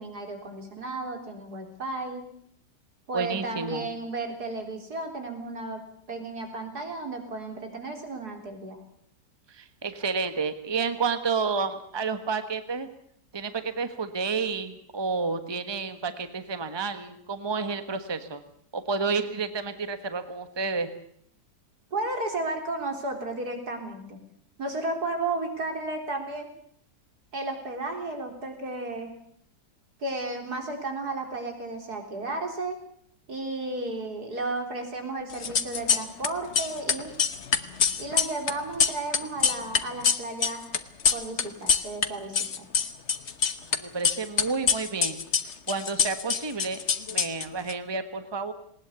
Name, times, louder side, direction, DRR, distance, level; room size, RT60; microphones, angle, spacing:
voice 1, 0.0-2.2 3.1-8.8 21.9-24.2 24.6-26.5 27.3-29.1 30.0-32.8 33.3-37.1 38.0-40.7 41.1-42.7, right 2 dB, 60° right, 4 dB, 4.2 m, -33 dB
voice 2, 3.1-3.9 9.5-12.9 13.3-18.4 18.7-20.9 43.7-45.2 45.7-46.8 47.1-48.5, right 4 dB, 15° right, 10 dB, 1.3 m, -30 dB
sound 1, 35.3-36.3 36.5-42.1 42.3-43.8 44.0-47.7, left 6 dB, 45° left, 1.2 m, -25 dB
19.5 x 19.5 x 8.3 m, 0.67 s
omnidirectional pair, 1.9 m